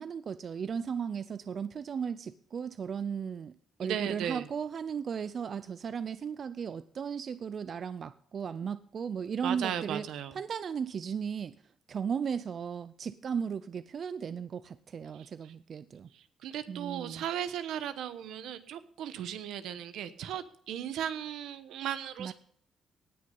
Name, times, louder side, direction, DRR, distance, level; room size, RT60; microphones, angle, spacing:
voice 1, 0.0-3.5 3.8-11.5 11.9-16.1 16.7-17.2 22.2-22.3, right 7 dB, 50° right, 15 dB, 0.5 m, -36 dB
voice 2, 3.8-4.4 9.4-10.4 16.4-22.3, right 10 dB, 85° right, 12 dB, 1.0 m, -36 dB
18.0 x 6.6 x 5.4 m, 0.64 s
cardioid pair, 90°, 0 cm